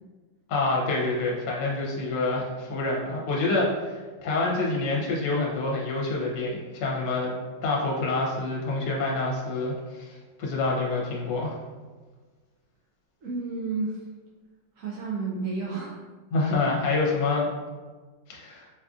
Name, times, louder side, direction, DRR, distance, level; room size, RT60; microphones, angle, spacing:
voice 1, 0.5-7.3 7.6-11.6 16.3-17.5 18.3-18.6, left 3 dB, 70° left, -3 dB, 1.3 m, -27 dB
voice 2, 13.2-14.0 14.8-16.0, right 4 dB, 70° right, -4 dB, 0.8 m, -31 dB
4.8 x 2.5 x 2.3 m, 1.4 s
omnidirectional pair, 2.0 m